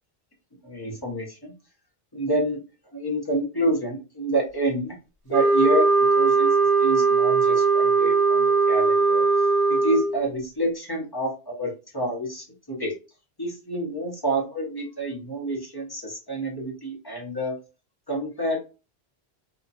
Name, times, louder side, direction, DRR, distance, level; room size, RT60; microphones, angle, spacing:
voice 1, 0.6-1.5 2.1-2.6 2.9-4.9 5.2-9.3 9.7-12.9 13.4-17.6 18.1-18.6, right 1 dB, 25° left, -1 dB, 0.8 m, -28 dB
sound 1, 5.3-10.2, right 4 dB, 80° right, 1.0 m, -20 dB
2.8 x 2.1 x 2.5 m, 0.31 s
omnidirectional pair, 1.1 m